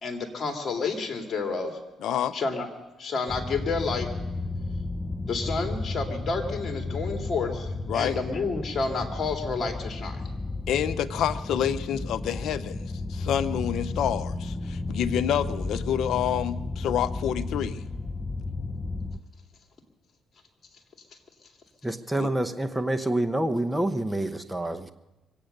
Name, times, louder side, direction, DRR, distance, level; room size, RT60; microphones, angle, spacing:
voice 1, 0.0-1.8 2.3-2.7 3.0-4.1 5.3-10.2, left 4 dB, 45° left, 5 dB, 2.4 m, -30 dB
voice 2, 2.0-2.3 7.9-8.2 10.7-12.8 13.1-17.8 22.1-22.3, left 10 dB, 75° left, 12 dB, 0.6 m, -28 dB
sound 1, 3.3-19.2, left 2 dB, 20° left, 0.7 m, -33 dB
voice 3, 21.8-24.9, right 1 dB, 5° right, 7 dB, 0.9 m, -27 dB
23.5 x 8.7 x 6.6 m, 1.0 s
cardioid pair, 90°, 0 cm